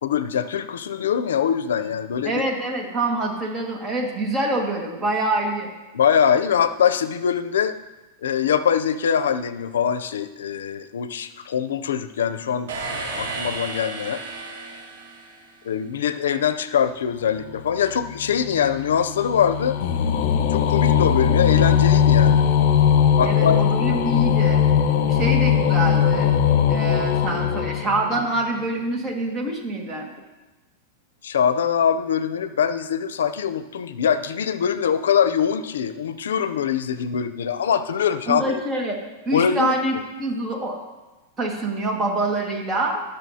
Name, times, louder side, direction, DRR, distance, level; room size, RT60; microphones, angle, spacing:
voice 1, 0.0-2.4 5.9-7.8 8.2-14.2 15.6-19.8 20.5-22.4 23.2-23.6 31.2-38.6 39.3-39.7, left 8 dB, 90° left, 12 dB, 0.5 m, -23 dB
voice 2, 2.3-5.7 23.2-24.7 25.0-26.3 26.7-30.1 38.3-39.0 39.3-40.8 41.4-43.0, right 2 dB, 25° right, 0 dB, 1.8 m, -25 dB
sound 1, 12.7-15.8, right 3 dB, 85° right, 2.4 m, -33 dB
sound 2, 17.5-28.4, left 8 dB, 60° left, 0.9 m, -20 dB
17.0 x 6.6 x 2.8 m, 1.1 s
hypercardioid pair, 130°, 0 cm